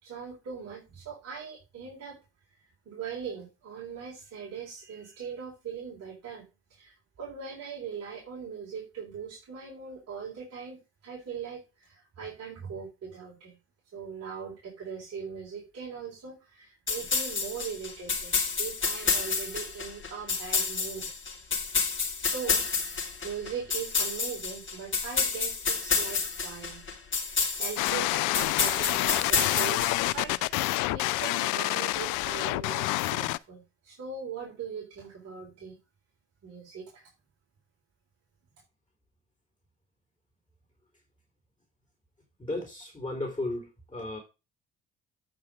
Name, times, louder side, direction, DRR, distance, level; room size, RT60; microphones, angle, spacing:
voice 1, 0.0-2.2 2.9-6.4 6.7-13.6 13.9-21.1 22.2-26.8 27.2-35.8 36.4-37.1, right 6 dB, 50° right, 4.1 m, -40 dB
sound 1, 16.9-30.4, left 5 dB, 35° left, 3.2 m, -29 dB
sound 2, 27.8-33.4, left 19 dB, 65° left, 0.5 m, -28 dB
voice 2, 42.4-44.2, left 2 dB, 15° left, 4.2 m, -34 dB
9.1 x 5.9 x 5.1 m
hypercardioid pair, 50°, 33 cm